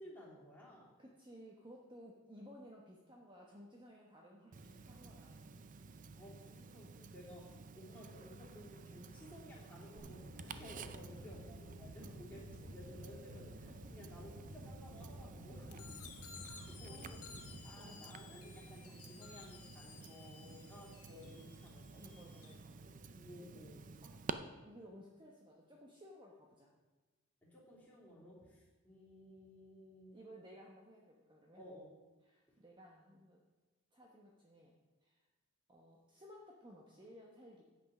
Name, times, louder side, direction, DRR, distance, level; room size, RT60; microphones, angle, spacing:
voice 1, 0.0-0.9 6.2-15.7 16.6-22.0 22.3-22.4 23.1-23.9 27.4-30.2 31.6-31.9, left 1 dB, 10° left, -7 dB, 3.2 m, -56 dB
voice 2, 1.0-5.6 11.1-11.3 12.0-12.2 13.7-13.8 15.6-15.8 16.4-17.2 17.8-18.0 22.0-23.0 24.0-26.7 30.1-31.6 32.2-33.4 33.9-34.7 35.0-35.2 35.7-37.6, equal, 20° right, -2 dB, 1.0 m, -57 dB
Tick-tock, 4.5-24.3, right 4 dB, 35° right, 0.4 m, -52 dB
sound 1, 10.0-17.6, equal, 85° right, 1.4 m, -53 dB
sound 2, 15.7-22.5, left 6 dB, 85° left, 1.4 m, -56 dB
9.8 x 8.1 x 6.0 m, 1.3 s
head